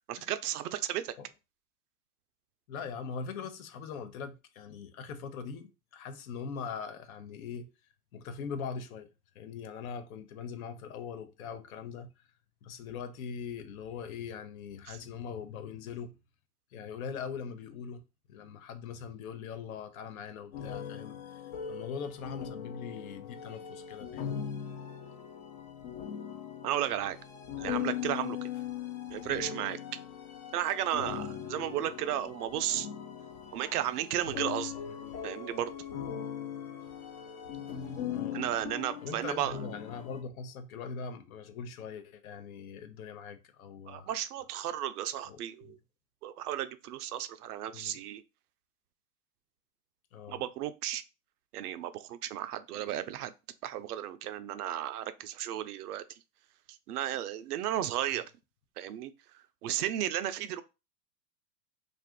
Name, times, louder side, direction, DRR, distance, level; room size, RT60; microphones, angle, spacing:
voice 1, 0.1-1.1 14.9-15.0 26.6-27.2 27.6-28.5 29.1-29.8 30.5-32.9 33.5-34.7 35.2-35.7 38.3-39.5 43.9-45.8 46.2-48.2 50.3-51.0 51.5-53.3 53.6-56.0 56.9-58.3 58.8-59.1 59.6-60.6, right 12 dB, 70° right, 0.5 m, -34 dB
voice 2, 2.7-7.7 8.1-9.1 9.3-12.3 12.6-16.2 16.7-18.0 18.3-24.4 29.2-29.4 34.9-35.2 38.1-38.5 39.0-44.1 45.3-45.7 47.7-48.0 50.1-50.4, left 6 dB, 60° left, 0.7 m, -41 dB
sound 1, 20.5-40.2, left 9 dB, 30° left, 0.3 m, -40 dB
2.5 x 2.4 x 3.5 m
hypercardioid pair, 105°, 49 cm